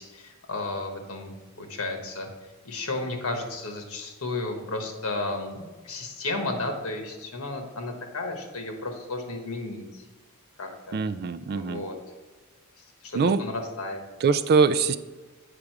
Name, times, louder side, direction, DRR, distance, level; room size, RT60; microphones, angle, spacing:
voice 1, 0.0-2.3 2.6-10.0 10.6-11.0 11.5-12.0 13.0-14.0, left 2 dB, 70° left, 3 dB, 1.4 m, -33 dB
voice 2, 10.9-11.8 13.1-13.4 14.2-15.0, right 5 dB, 45° right, 13 dB, 0.4 m, -22 dB
8.5 x 5.1 x 4.7 m, 1.3 s
head